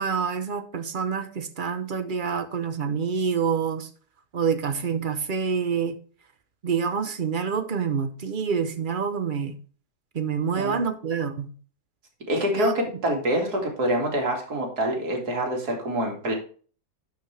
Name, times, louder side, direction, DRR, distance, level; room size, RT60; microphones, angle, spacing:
voice 1, 0.0-3.9 4.3-6.0 6.6-9.6 10.1-11.5 12.5-12.7, right 6 dB, 40° right, 10 dB, 0.8 m, -27 dB
voice 2, 12.3-16.4, equal, 85° right, 1 dB, 2.9 m, -26 dB
11.5 x 5.3 x 3.3 m, 0.41 s
omnidirectional pair, 1.6 m